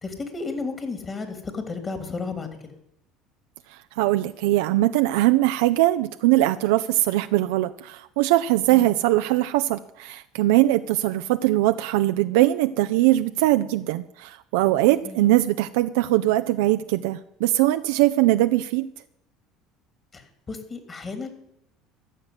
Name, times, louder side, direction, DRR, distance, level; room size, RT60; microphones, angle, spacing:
voice 1, 0.0-2.5 8.7-8.9 15.0-15.3 20.1-21.3, left 4 dB, 30° left, 6 dB, 3.1 m, -33 dB
voice 2, 4.0-18.9, right 16 dB, 75° right, 9 dB, 0.5 m, -21 dB
14.5 x 6.5 x 9.5 m, 0.79 s
hypercardioid pair, 70°, 0 cm